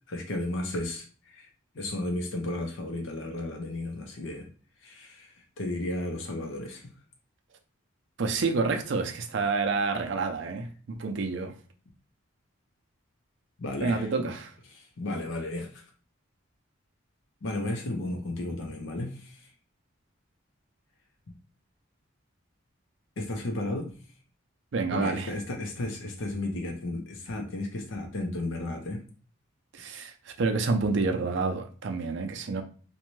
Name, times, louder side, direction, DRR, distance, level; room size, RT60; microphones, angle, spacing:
voice 1, 0.1-1.5 1.7-4.5 4.8-6.9 13.6-14.3 14.7-15.8 17.4-19.5 21.3-21.4 23.2-23.9 24.9-29.0, left 2 dB, 70° left, 0.6 m, -34 dB
voice 2, 8.2-11.5 13.8-14.5 24.7-25.3 29.7-32.6, right 4 dB, 60° right, 0.4 m, -28 dB
2.6 x 2.2 x 3.0 m
head